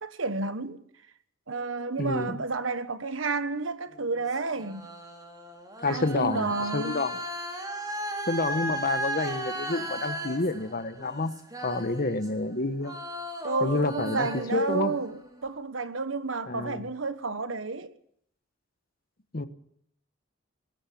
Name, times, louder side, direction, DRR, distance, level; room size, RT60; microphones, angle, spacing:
voice 1, 0.0-0.8 1.5-4.9 5.9-7.0 13.4-17.9, right 3 dB, 85° right, 1.3 m, -31 dB
voice 2, 2.0-2.4 5.8-7.1 8.3-11.3 11.6-12.9 13.6-14.9 16.5-16.8 19.3-19.5, left 3 dB, 50° left, 1.3 m, -29 dB
sound 1, 3.9-12.5 12.8-15.5, right 1 dB, 20° right, 3.7 m, -36 dB
19.5 x 17.5 x 8.5 m
head